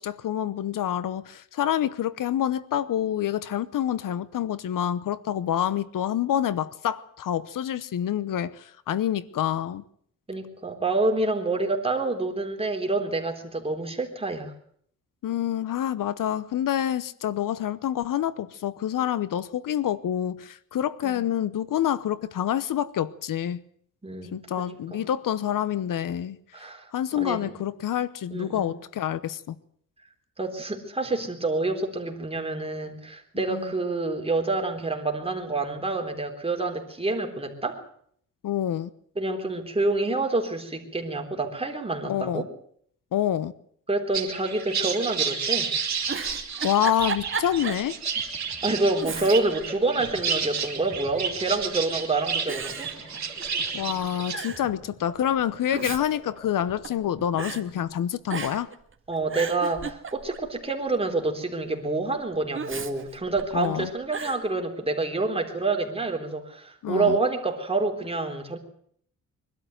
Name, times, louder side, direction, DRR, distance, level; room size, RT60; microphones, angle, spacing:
voice 1, 0.0-9.8 15.2-23.6 24.3-29.6 33.5-33.7 38.4-38.9 42.0-42.5 43.1-43.5 46.6-48.0 53.7-58.7 63.5-63.9 66.8-67.2, left 10 dB, 75° left, 0.9 m, -27 dB
voice 2, 10.3-14.5 21.0-21.2 24.0-24.4 24.7-25.1 26.5-27.6 28.3-28.7 30.4-37.8 39.2-42.4 43.9-45.7 48.6-52.9 59.1-68.6, right 3 dB, 15° right, 3.8 m, -27 dB
sound 1, 44.1-54.4, right 6 dB, 55° right, 3.7 m, -31 dB
Giggle, 45.9-47.9 48.3-48.4 49.0-49.7 50.0-50.8 51.6-52.0 52.5-53.7 54.0-54.1 54.3-54.7 55.5-57.0 57.4-57.6 58.3-58.8 59.1-60.5 62.5-63.7 64.1-64.4, right 5 dB, 40° right, 1.9 m, -34 dB
sound 2, 47.6-58.4, equal, 15° left, 3.8 m, -47 dB
23.0 x 12.5 x 9.2 m
cardioid pair, 105°, 33 cm